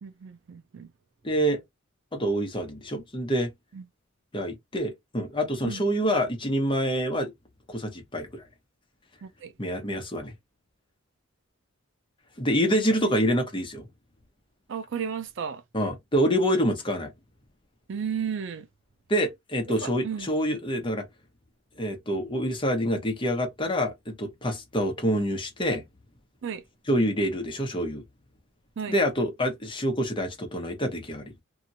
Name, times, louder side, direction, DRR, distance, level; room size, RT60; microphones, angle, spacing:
voice 1, 0.0-0.9 3.7-3.8 5.6-5.8 9.2-9.5 14.7-15.6 17.9-18.7 19.8-20.3 26.4-26.6 28.8-29.0, right 7 dB, 60° right, 0.4 m, -33 dB
voice 2, 1.2-1.6 2.1-3.5 4.3-7.3 7.7-8.4 9.6-10.3 12.4-13.8 15.7-17.1 19.1-21.0 21.8-25.8 26.9-28.0 28.9-31.2, equal, 25° left, 1.0 m, -26 dB
2.8 x 2.5 x 2.7 m
head